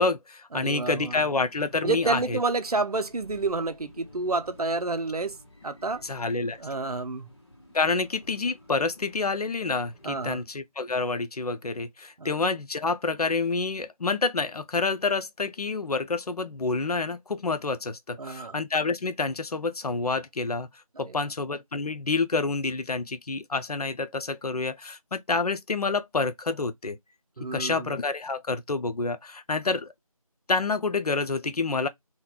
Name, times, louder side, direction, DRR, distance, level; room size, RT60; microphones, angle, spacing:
voice 1, 0.0-2.4 6.0-6.6 7.7-20.7 21.0-27.0 27.5-29.9 30.5-31.9, left 3 dB, 85° left, 0.4 m, -28 dB
voice 2, 0.5-1.2 1.8-5.4 5.6-6.0 6.6-7.3 10.0-10.4 12.2-12.3 18.2-18.6 21.0-21.2 27.4-28.0, right 3 dB, 90° right, 0.5 m, -29 dB
sound 1, 0.6-10.2, left 1 dB, 45° left, 0.9 m, -53 dB
2.8 x 2.1 x 2.2 m
figure-of-eight pair, 165°, 19 cm